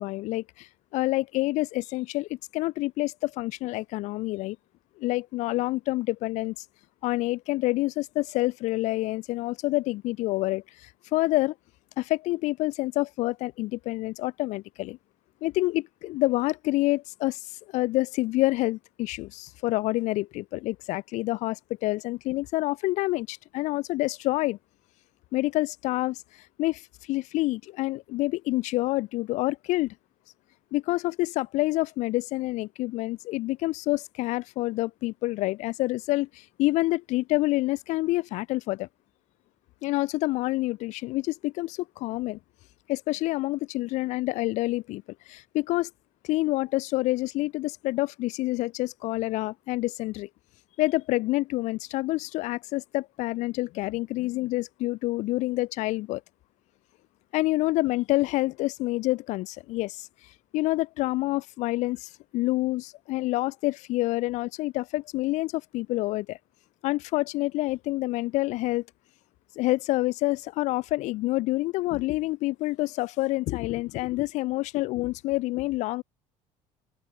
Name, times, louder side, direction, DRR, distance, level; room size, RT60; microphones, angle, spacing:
voice 1, 0.0-4.6 5.0-6.6 7.0-11.5 12.0-15.0 15.4-17.4 17.7-24.6 25.3-26.2 26.6-29.9 30.7-38.9 39.8-42.4 42.9-45.0 45.3-45.9 46.2-50.3 50.8-56.2 57.3-60.1 60.5-66.4 66.8-68.8 69.6-76.0, left 19 dB, 75° left, 1.7 m, -27 dB
cardioid pair, 125°, 12 cm